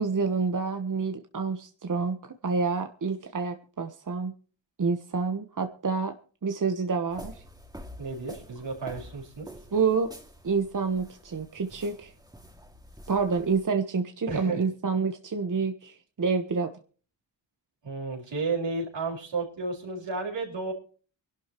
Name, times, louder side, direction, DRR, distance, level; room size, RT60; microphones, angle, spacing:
voice 1, 0.0-2.2 2.4-4.3 4.8-6.1 6.4-7.3 9.7-10.1 10.4-12.1 13.1-16.7, right 5 dB, 45° right, 7 dB, 1.2 m, -28 dB
sound 1, 7.1-13.6, equal, 10° right, 2.3 m, -47 dB
voice 2, 8.0-9.5 14.3-14.6 17.8-20.7, right 3 dB, 75° right, -1 dB, 5.1 m, -32 dB
24.5 x 12.0 x 3.0 m, 0.40 s
cardioid pair, 55°, 44 cm